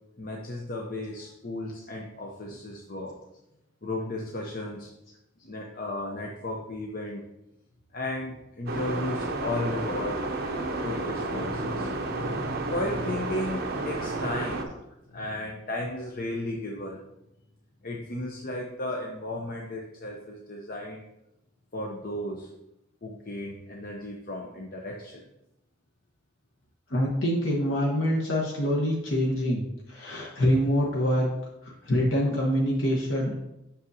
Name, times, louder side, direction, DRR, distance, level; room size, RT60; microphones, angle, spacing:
voice 1, 0.2-3.2 3.8-4.9 5.4-7.2 7.9-10.2 10.6-14.7 15.1-17.1 17.8-21.0 21.7-22.5 23.0-25.2, left 1 dB, 45° left, 0 dB, 0.7 m, -34 dB
sound 1, 8.7-14.6, right 2 dB, 55° right, 0.9 m, -31 dB
voice 2, 26.9-31.3 31.8-33.3, equal, 75° left, -3 dB, 1.1 m, -25 dB
8.0 x 6.2 x 2.7 m, 0.89 s
head